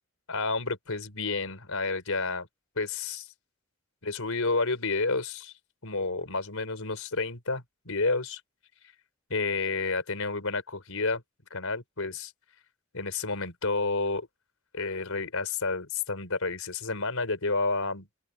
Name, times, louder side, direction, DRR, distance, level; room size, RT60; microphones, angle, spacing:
voice 1, 0.3-2.5 2.8-3.3 4.0-5.5 5.8-8.4 9.3-11.2 11.5-12.3 12.9-14.3 14.7-18.1, left 3 dB, 80° left, 4.1 m, -30 dB
open air
head